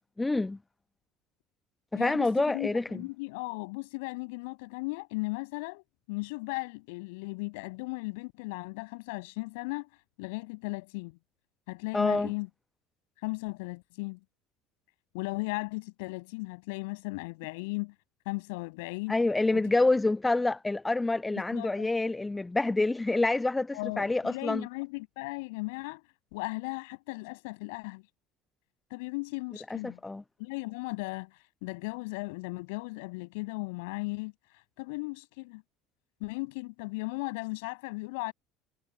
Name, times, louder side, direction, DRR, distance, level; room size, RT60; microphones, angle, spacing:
voice 1, 0.2-0.6 1.9-2.8 11.9-12.3 19.1-24.6 29.7-30.2, left 2 dB, 15° left, 1.2 m, -27 dB
voice 2, 1.9-9.9 10.2-11.2 11.7-12.5 13.2-14.2 15.1-17.9 18.3-19.1 19.5-19.6 21.5-21.9 23.7-26.0 26.3-28.0 28.9-30.0 30.4-31.3 31.6-34.3 34.8-35.6 36.2-38.3, left 27 dB, 60° left, 7.3 m, -36 dB
figure-of-eight pair, 65°, 0 cm